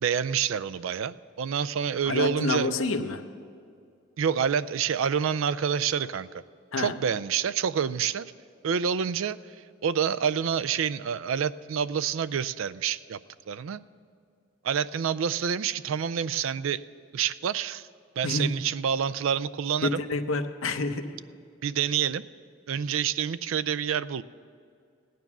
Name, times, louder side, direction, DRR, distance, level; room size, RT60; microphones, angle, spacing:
voice 1, 0.0-2.8 4.2-6.4 6.8-8.3 8.6-13.2 13.5-13.8 14.6-16.8 17.1-17.9 18.2-20.0 21.6-22.2 22.7-24.2, right 7 dB, 80° right, 16 dB, 0.4 m, -28 dB
voice 2, 2.0-3.2 6.7-6.9 18.2-18.5 19.8-21.1, left 3 dB, 85° left, 8 dB, 0.8 m, -28 dB
16.5 x 9.3 x 6.0 m, 2.3 s
head